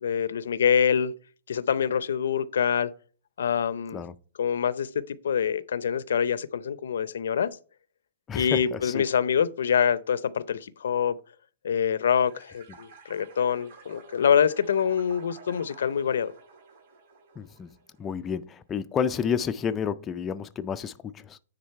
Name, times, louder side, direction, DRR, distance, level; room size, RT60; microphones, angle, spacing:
voice 1, 0.0-1.1 1.5-2.9 3.4-4.0 4.4-7.5 8.3-11.2 11.6-16.3, left 7 dB, 80° left, 0.6 m, -25 dB
voice 2, 8.3-9.0 17.4-17.7 18.0-21.4, left 7 dB, 15° left, 0.3 m, -30 dB
sound 1, 12.2-18.0, right 4 dB, 55° right, 4.1 m, -50 dB
9.7 x 3.9 x 4.5 m
hypercardioid pair, 160°, 0 cm